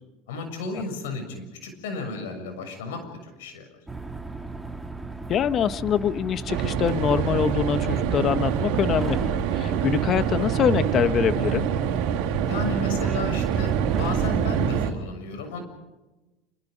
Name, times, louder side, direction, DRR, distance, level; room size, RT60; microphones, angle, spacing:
voice 1, 0.3-3.7 12.5-15.6, left 2 dB, 85° left, 6 dB, 6.9 m, -33 dB
sound 1, 3.9-14.7, right 2 dB, 5° right, 2.2 m, -36 dB
voice 2, 5.3-9.2 9.5-11.7, left 8 dB, 45° left, 12 dB, 1.3 m, -24 dB
sound 2, 6.5-14.9, right 9 dB, 75° right, 3.5 m, -25 dB
28.0 x 27.5 x 5.2 m, 1.1 s
supercardioid pair, 105°, 0 cm